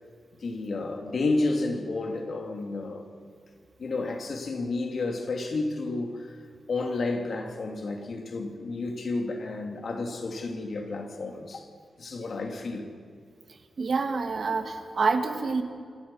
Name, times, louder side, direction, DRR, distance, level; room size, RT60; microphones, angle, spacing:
voice 1, 0.4-3.0 3.8-6.4 6.7-11.7 12.0-12.9, left 3 dB, 55° left, 2.9 m, -31 dB
voice 2, 13.8-15.6, right 4 dB, 50° right, 2.0 m, -27 dB
29.0 x 26.0 x 5.7 m
wide cardioid pair, 135°, 0 cm